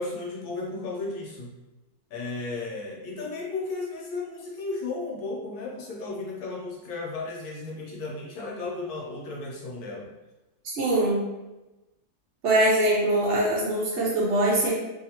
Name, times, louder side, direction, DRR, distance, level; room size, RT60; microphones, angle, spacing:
voice 1, 0.0-1.6 2.1-10.1, left 3 dB, 80° left, -2 dB, 1.2 m, -34 dB
voice 2, 10.8-11.2 12.4-14.7, right 1 dB, 60° right, -5 dB, 0.8 m, -22 dB
2.7 x 2.6 x 2.8 m, 1.1 s
omnidirectional pair, 1.6 m